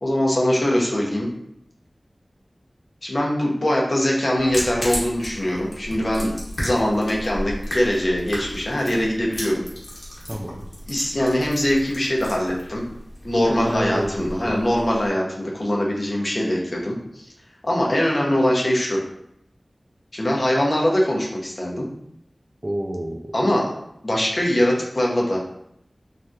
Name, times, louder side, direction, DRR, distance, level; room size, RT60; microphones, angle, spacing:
voice 1, 0.0-1.3 3.0-9.6 10.9-12.9 13.2-17.3 17.6-19.0 20.1-21.9 23.3-23.7 24.0-25.4, left 1 dB, 45° left, -2 dB, 0.7 m, -22 dB
sound 1, 4.4-15.1, equal, 80° left, 1.0 m, -34 dB
voice 2, 10.3-10.7 13.4-14.6 22.6-23.3, right 1 dB, 25° right, 3 dB, 0.3 m, -29 dB
3.2 x 2.3 x 2.6 m, 0.76 s
wide cardioid pair, 65°, 0 cm